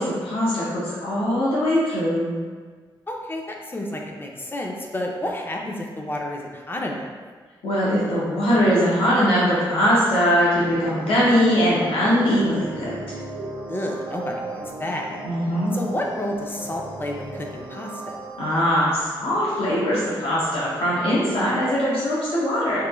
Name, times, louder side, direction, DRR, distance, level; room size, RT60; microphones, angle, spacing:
voice 1, 0.0-2.3 7.6-12.9 15.2-15.7 18.4-22.8, equal, 80° left, -8 dB, 0.7 m, -21 dB
voice 2, 3.1-7.1 13.7-15.2 15.7-18.2, left 1 dB, 25° left, 0 dB, 0.4 m, -30 dB
sound 1, 10.6-18.6, right 1 dB, 90° right, 0.4 m, -35 dB
3.0 x 2.0 x 2.3 m, 1.5 s
cardioid pair, 55°, 9 cm